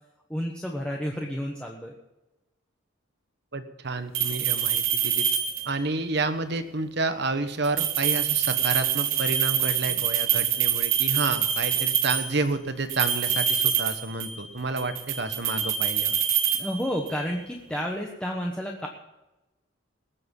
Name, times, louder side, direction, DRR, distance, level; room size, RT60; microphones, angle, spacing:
voice 1, 0.3-1.9 9.9-10.0 16.5-18.9, equal, 5° left, -1 dB, 1.1 m, -31 dB
voice 2, 3.5-5.3 5.6-16.1, right 3 dB, 55° right, 9 dB, 1.2 m, -30 dB
sound 1, 4.1-5.9 7.6-12.4 12.9-14.5 14.8-17.2, right 9 dB, 75° right, 1.1 m, -26 dB
19.5 x 7.8 x 5.4 m, 1.0 s
head